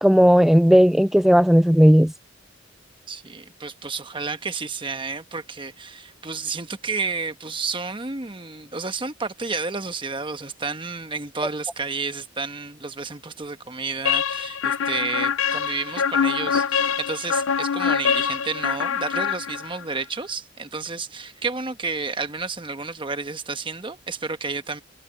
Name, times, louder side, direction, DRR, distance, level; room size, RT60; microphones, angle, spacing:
voice 1, 0.0-2.1, equal, ahead, 0.4 m, -15 dB
voice 2, 3.1-24.8, right 4 dB, 25° right, 1.1 m, -31 dB
sound 1, 14.1-19.9, left 7 dB, 85° left, 0.6 m, -24 dB
head